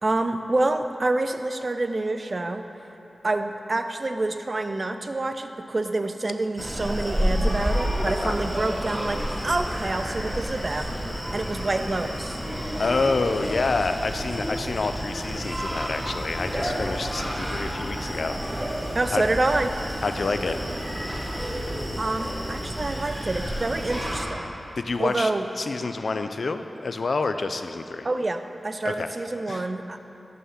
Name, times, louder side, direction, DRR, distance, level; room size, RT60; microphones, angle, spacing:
voice 1, 0.0-2.6 3.2-10.9 11.3-12.4 18.9-19.7 22.0-24.5 25.0-25.5 28.0-30.0, right 2 dB, 45° right, 8 dB, 0.4 m, -27 dB
Screaming, 6.6-24.2, equal, 10° right, 1.0 m, -30 dB
voice 2, 8.0-8.4 12.7-18.7 19.1-19.2 20.0-20.6 24.8-25.3 25.6-28.1 28.8-29.1 29.5-29.7, left 3 dB, 70° left, 8 dB, 0.3 m, -28 dB
6.3 x 5.5 x 5.6 m, 2.9 s
wide cardioid pair, 65°, 0 cm